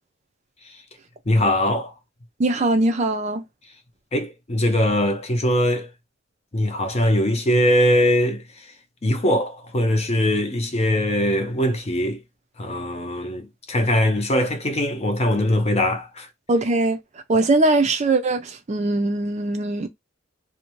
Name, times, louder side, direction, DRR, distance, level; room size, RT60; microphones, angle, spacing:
voice 1, 1.3-1.9 4.1-5.9 6.5-8.7 9.0-12.2 12.6-16.3, left 1 dB, 30° left, 0.6 m, -21 dB
voice 2, 2.4-3.4 16.5-17.0 17.3-19.9, right 2 dB, 35° right, 0.4 m, -21 dB
2.5 x 2.1 x 2.9 m
head